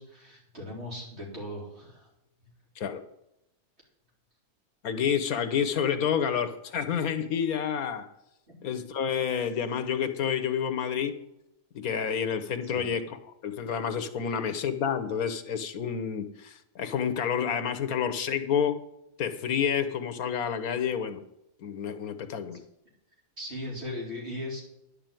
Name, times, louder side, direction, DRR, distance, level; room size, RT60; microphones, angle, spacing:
voice 1, 0.0-2.1 12.6-12.9 14.3-14.4 22.5-22.6 23.4-24.6, left 1 dB, 45° right, -3 dB, 4.4 m, -38 dB
voice 2, 4.8-8.1 8.6-11.2 11.7-13.2 13.4-18.8 19.2-21.2 21.6-22.6, left 7 dB, 80° left, 11 dB, 1.4 m, -29 dB
10.5 x 6.7 x 9.0 m, 0.84 s
omnidirectional pair, 1.5 m